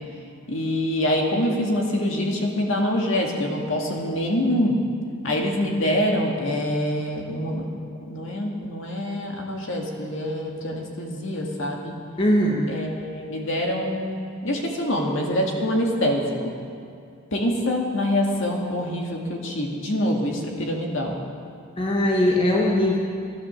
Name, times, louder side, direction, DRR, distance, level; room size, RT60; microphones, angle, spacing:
voice 1, 0.5-4.8 5.2-7.7 8.1-11.9 12.7-16.5 17.3-21.2, left 1 dB, 65° left, 0 dB, 2.0 m, -25 dB
voice 2, 12.2-12.7 21.8-23.0, left 1 dB, 25° left, -2 dB, 1.3 m, -20 dB
14.0 x 11.0 x 7.2 m, 2.3 s
head